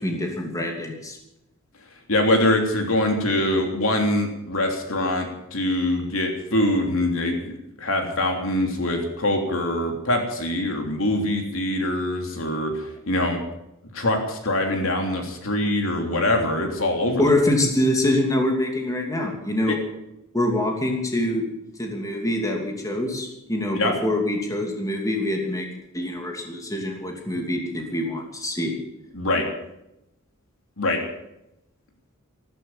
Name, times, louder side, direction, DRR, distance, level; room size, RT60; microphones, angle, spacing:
voice 1, 0.0-1.2 17.2-19.8 20.3-21.4 21.8-25.7 25.9-28.7, left 1 dB, 15° left, 1 dB, 2.8 m, -25 dB
voice 2, 2.1-13.4 13.9-17.2 19.7-19.8 23.7-23.9 29.1-29.5 30.8-31.0, left 1 dB, 70° left, 3 dB, 3.2 m, -23 dB
14.5 x 13.5 x 7.4 m, 0.88 s
head